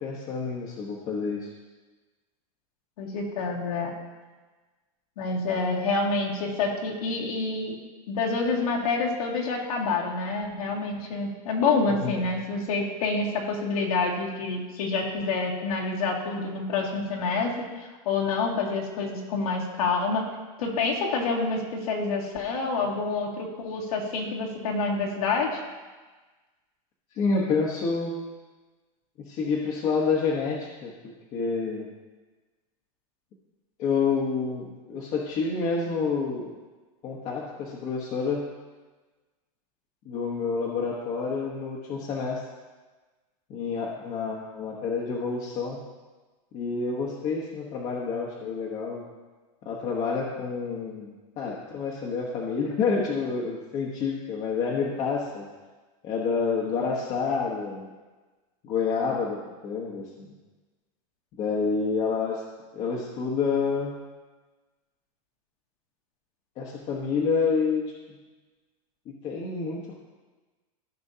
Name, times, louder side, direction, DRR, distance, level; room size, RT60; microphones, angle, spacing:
voice 1, 0.0-1.5 11.9-12.2 27.1-28.2 29.3-30.9 31.3-31.9 33.8-36.5 37.0-38.4 40.0-42.4 43.5-45.8 46.5-49.0 49.6-55.5 56.0-57.9 58.6-59.4 59.6-60.3 61.4-62.4 62.7-63.9 66.6-67.9 69.2-69.9, left 5 dB, 30° left, -4 dB, 1.1 m, -28 dB
voice 2, 3.0-3.9 5.2-7.8 8.1-17.7 18.1-20.3 20.6-25.6, left 3 dB, 80° left, -2 dB, 2.1 m, -27 dB
15.0 x 6.2 x 2.7 m, 1.3 s
supercardioid pair, 155°, 19 cm